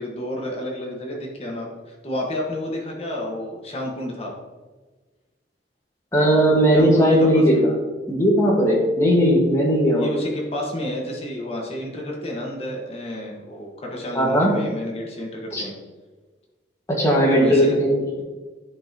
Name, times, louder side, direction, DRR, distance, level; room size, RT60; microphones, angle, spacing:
voice 1, 0.0-4.3 6.7-7.6 10.0-15.7 17.3-17.8, left 1 dB, 35° left, -1 dB, 1.5 m, -30 dB
voice 2, 6.1-7.7 8.1-10.1 14.2-14.5 15.5-15.6 17.0-18.2, equal, 15° left, -3 dB, 1.6 m, -17 dB
9.9 x 5.6 x 2.9 m, 1.3 s
head